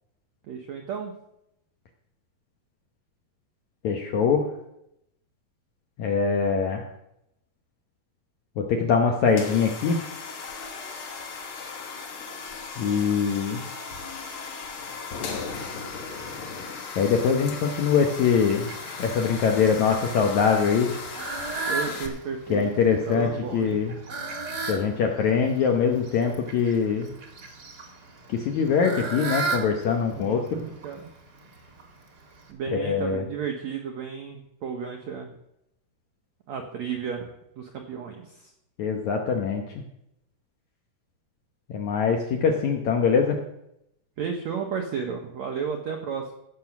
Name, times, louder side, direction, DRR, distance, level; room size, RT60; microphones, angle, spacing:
voice 1, 0.5-1.1 21.7-22.7 23.1-23.8 30.2-31.1 32.5-35.3 36.5-38.5 44.2-46.3, right 6 dB, 75° right, 3 dB, 1.6 m, -33 dB
voice 2, 3.8-4.4 6.0-6.8 8.6-10.0 12.8-13.6 17.0-18.7 19.0-20.9 22.5-23.9 24.7-27.1 28.3-30.6 32.7-33.2 38.8-39.6 41.7-43.4, left 6 dB, 70° left, 2 dB, 1.8 m, -23 dB
sound 1, 9.3-22.1, left 5 dB, 90° left, 1.1 m, -37 dB
Fowl, 17.1-32.5, right 3 dB, 45° right, 1.3 m, -37 dB
15.5 x 6.9 x 5.9 m, 0.81 s
omnidirectional pair, 4.6 m